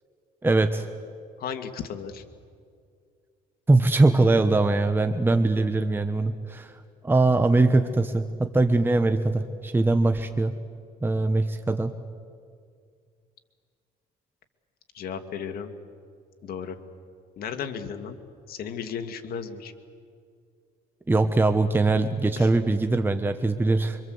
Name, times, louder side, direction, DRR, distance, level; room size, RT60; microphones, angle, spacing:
voice 1, 0.4-0.9 3.7-6.7 7.0-10.5 11.0-11.9 21.1-24.0, right 2 dB, 10° right, 8 dB, 1.1 m, -22 dB
voice 2, 1.4-2.2 14.9-15.7 16.4-16.8 17.4-18.2 18.5-19.7 22.4-22.5, left 7 dB, 65° left, 7 dB, 2.2 m, -34 dB
25.5 x 25.0 x 8.0 m, 2.2 s
cardioid pair, 110°, 17 cm